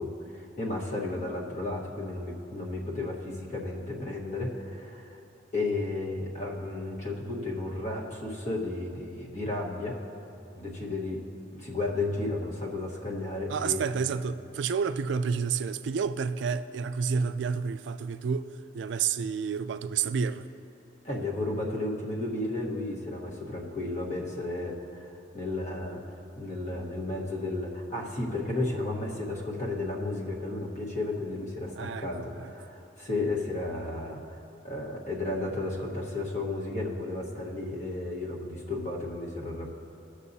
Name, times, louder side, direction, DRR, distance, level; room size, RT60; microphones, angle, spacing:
voice 1, 0.0-5.2 5.5-10.0 10.5-11.2 11.5-13.8 21.0-26.0 26.4-34.4 34.6-39.7, left 2 dB, 40° left, 1.3 m, -33 dB
voice 2, 13.5-18.5 18.7-20.5 31.8-32.5, right 6 dB, 80° right, 0.3 m, -30 dB
18.5 x 6.5 x 2.7 m
head